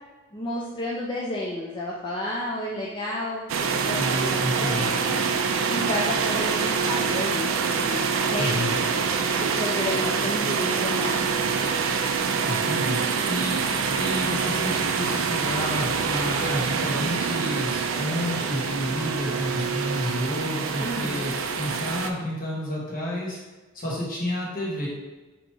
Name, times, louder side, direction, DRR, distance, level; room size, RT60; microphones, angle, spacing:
voice 1, 0.3-5.2 5.7-11.3 20.8-21.3, left 1 dB, 25° left, -4 dB, 0.5 m, -32 dB
sound 1, 3.5-22.1, right 5 dB, 75° right, 0.4 m, -25 dB
voice 2, 3.9-4.9 8.4-8.8 12.4-13.7 13.9-23.4 23.7-24.9, equal, 45° left, -5 dB, 1.4 m, -30 dB
3.9 x 2.9 x 4.5 m, 1.2 s
head